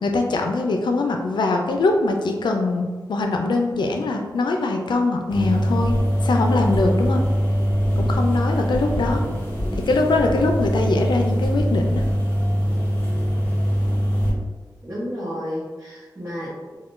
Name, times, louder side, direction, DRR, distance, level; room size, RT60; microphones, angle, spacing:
voice 1, 0.0-5.9 6.2-7.2 8.0-9.2 9.8-12.0, left 3 dB, 90° left, 3 dB, 0.4 m, -22 dB
sound 1, 5.3-14.3, equal, 30° left, 1.2 m, -22 dB
voice 2, 14.8-16.8, equal, 40° right, -9 dB, 0.9 m, -31 dB
3.5 x 2.2 x 2.5 m, 1.4 s
cardioid pair, 55°, 8 cm